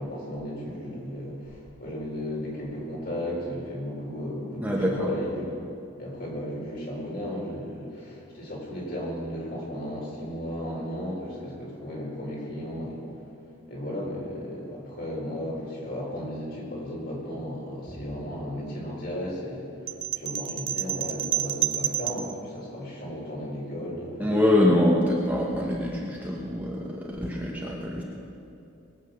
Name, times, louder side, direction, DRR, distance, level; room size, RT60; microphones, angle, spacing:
voice 1, 0.0-5.5 6.0-13.0 13.7-24.3 24.5-24.8, equal, 50° left, -3 dB, 4.3 m, -35 dB
voice 2, 4.6-5.1 17.9-18.0 24.2-28.0, left 1 dB, 10° right, -3 dB, 1.2 m, -24 dB
sound 1, 19.9-22.3, right 11 dB, 30° right, 0.4 m, -29 dB
21.0 x 8.3 x 6.5 m, 2.7 s
head